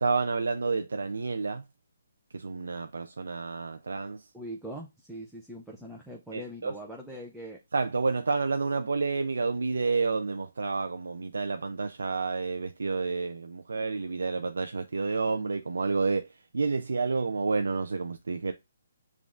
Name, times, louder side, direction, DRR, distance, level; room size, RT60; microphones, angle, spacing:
voice 1, 0.0-1.6 2.3-4.2 6.3-6.7 7.7-16.2 16.5-18.5, right 4 dB, 85° right, 0.4 m, -29 dB
voice 2, 4.3-7.6, right 1 dB, ahead, 0.5 m, -42 dB
7.0 x 2.4 x 2.4 m
hypercardioid pair, 155°, 0 cm